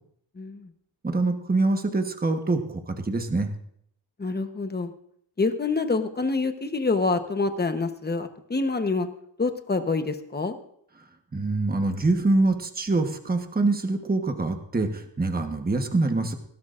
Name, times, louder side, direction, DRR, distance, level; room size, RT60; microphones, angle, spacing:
voice 1, 0.4-0.7 4.2-4.9 5.4-9.1 9.4-10.5, left 3 dB, 20° left, 7 dB, 1.0 m, -26 dB
voice 2, 1.0-3.5 11.3-16.3, right 2 dB, 20° right, 5 dB, 1.1 m, -25 dB
20.0 x 16.5 x 2.5 m, 0.69 s
wide cardioid pair, 175°, 45 cm